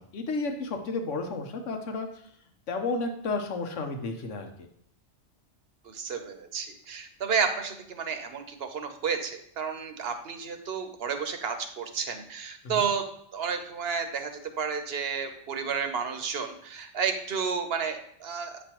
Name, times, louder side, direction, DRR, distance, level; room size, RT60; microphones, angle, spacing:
voice 1, 0.0-2.1 2.7-4.5 12.6-12.8, left 3 dB, 85° left, 5 dB, 1.2 m, -32 dB
voice 2, 5.8-13.0 13.3-18.6, right 6 dB, 60° right, 7 dB, 0.9 m, -31 dB
8.2 x 5.3 x 2.9 m, 0.67 s
omnidirectional pair, 1.2 m